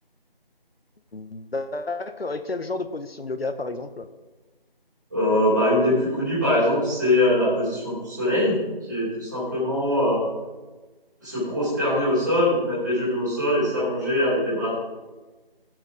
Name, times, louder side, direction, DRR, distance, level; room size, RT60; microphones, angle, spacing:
voice 1, 1.1-4.1, left 3 dB, 75° left, 10 dB, 1.1 m, -31 dB
voice 2, 5.1-8.6 8.9-10.2 11.2-14.7, left 1 dB, 20° right, -10 dB, 4.2 m, -22 dB
17.0 x 8.0 x 3.8 m, 1.2 s
figure-of-eight pair, 180°, 30 cm